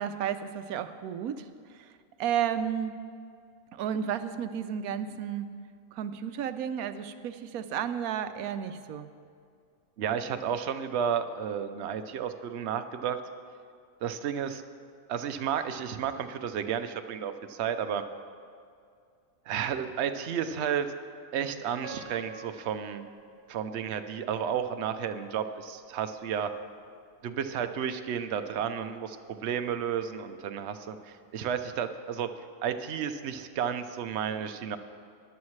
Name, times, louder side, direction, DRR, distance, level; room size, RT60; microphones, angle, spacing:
voice 1, 0.0-3.0 3.7-5.5 5.9-9.1, right 8 dB, 80° right, 11 dB, 1.1 m, -33 dB
voice 2, 10.0-13.2 14.0-14.6 15.1-18.0 19.5-21.0 21.3-23.1 23.5-26.5 27.2-32.3 32.6-34.8, right 8 dB, 60° right, 8 dB, 0.8 m, -32 dB
Piano, 21.8-24.8 25.4-25.5 26.2-26.4, right 5 dB, 40° right, 1.7 m, -48 dB
18.5 x 11.0 x 3.2 m, 2.3 s
omnidirectional pair, 1.5 m